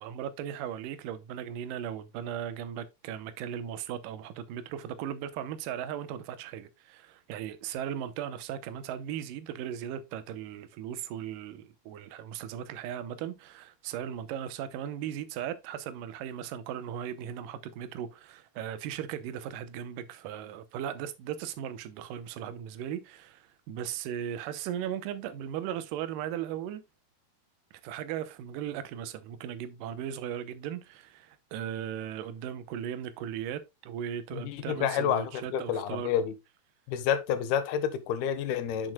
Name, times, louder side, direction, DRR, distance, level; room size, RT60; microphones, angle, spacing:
voice 1, 0.0-26.8 27.8-36.2, right 9 dB, 75° right, 2.2 m, -37 dB
voice 2, 34.3-36.3 36.9-38.9, left 8 dB, 90° left, 2.8 m, -29 dB
8.8 x 6.3 x 2.2 m
omnidirectional pair, 4.3 m